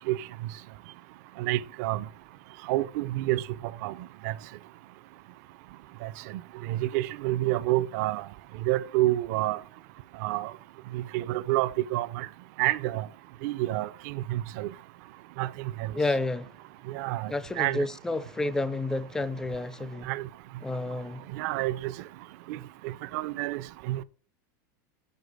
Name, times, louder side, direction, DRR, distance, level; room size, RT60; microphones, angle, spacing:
voice 1, 1.4-2.0 2.7-3.4 3.8-3.9 4.2-4.3 6.0-6.1 6.7-8.2 8.7-9.6 10.2-10.5 10.9-12.3 12.6-13.1 13.4-14.7 15.4-15.9 16.9-17.8 20.1-20.2 21.3-21.9 22.5-22.6 22.8-23.6 23.9-24.0, right 16 dB, 55° right, 0.4 m, -28 dB
voice 2, 15.9-16.5 17.3-20.1 20.6-21.2, left 2 dB, 5° left, 0.4 m, -30 dB
6.7 x 5.0 x 4.6 m
supercardioid pair, 155°, 11 cm